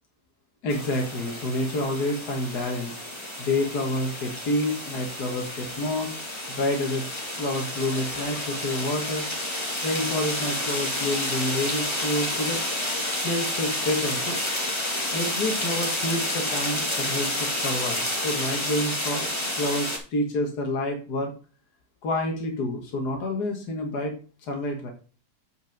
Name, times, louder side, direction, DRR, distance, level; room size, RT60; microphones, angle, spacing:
voice 1, 0.6-3.0 3.4-6.2 6.5-7.0 7.4-9.2 9.8-12.6 13.2-14.4 15.1-21.3 22.0-24.2 24.5-24.9, left 1 dB, 75° left, 2 dB, 2.0 m, -28 dB
sound 1, 0.7-20.0, left 1 dB, 15° left, 1.8 m, -30 dB
7.8 x 5.2 x 5.2 m, 0.37 s
omnidirectional pair, 1.7 m